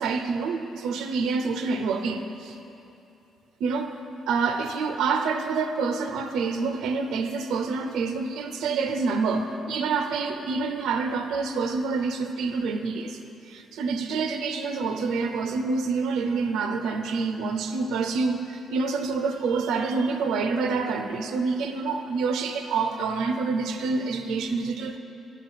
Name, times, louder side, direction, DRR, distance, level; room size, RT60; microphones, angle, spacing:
voice 1, 0.0-2.6 3.6-3.9 4.3-13.2 13.5-25.0, right 4 dB, 85° right, 6 dB, 0.4 m, -27 dB
7.4 x 5.7 x 5.4 m, 2.9 s
cardioid pair, 100°, 0 cm